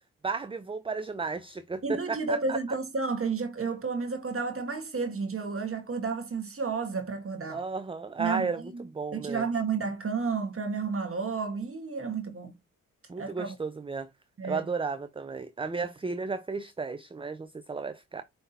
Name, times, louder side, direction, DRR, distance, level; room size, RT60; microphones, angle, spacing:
voice 1, 0.2-2.6 7.5-9.4 13.1-14.1 14.4-18.2, right 4 dB, 15° right, 0.5 m, -34 dB
voice 2, 1.8-7.6 8.2-8.8 9.1-12.5 13.2-13.5 14.4-14.6, right 4 dB, 40° right, 1.5 m, -31 dB
5.5 x 3.5 x 2.8 m
supercardioid pair, 50°, 33 cm